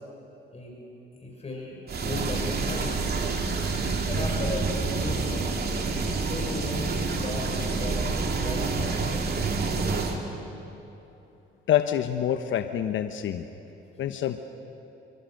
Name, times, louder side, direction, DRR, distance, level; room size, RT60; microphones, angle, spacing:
voice 1, 1.2-3.1 4.0-5.6 6.2-8.0 8.3-9.0, left 2 dB, 30° left, -1 dB, 6.4 m, -36 dB
sound 1, 1.9-10.2, right 4 dB, 50° right, 2.9 m, -28 dB
voice 2, 11.7-13.5 14.0-14.4, left 10 dB, 75° left, 8 dB, 1.0 m, -26 dB
27.5 x 24.0 x 6.6 m, 3.0 s
cardioid pair, 90°, 20 cm